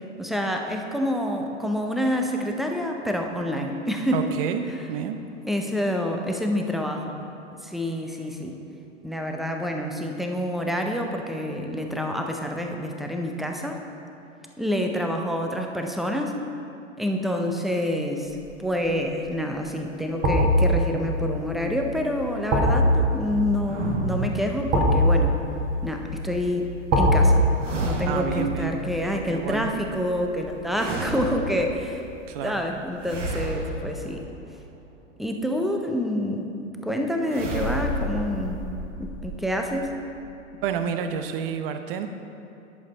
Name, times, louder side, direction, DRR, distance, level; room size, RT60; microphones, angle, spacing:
voice 1, 0.2-4.3 5.4-7.2 7.5-8.6 9.0-13.8 14.6-16.4 17.0-25.3 25.8-27.4 27.8-32.0 32.4-34.2 35.2-36.5 36.8-38.6 39.0-39.9, equal, ahead, 2 dB, 0.5 m, -27 dB
voice 2, 4.1-5.2 28.1-28.7 29.3-29.7 32.3-32.6 40.6-42.1, right 7 dB, 45° right, 7 dB, 0.8 m, -29 dB
sound 1, 18.4-18.8 20.2-31.2 31.6-31.7, equal, 30° right, 1.9 m, -24 dB
sound 2, 23.6-25.2 27.6-28.6 30.7-31.9 33.0-34.8 37.3-40.9, right 1 dB, 75° right, 1.3 m, -32 dB
10.5 x 6.7 x 4.0 m, 2.7 s
figure-of-eight pair, 95°, 37 cm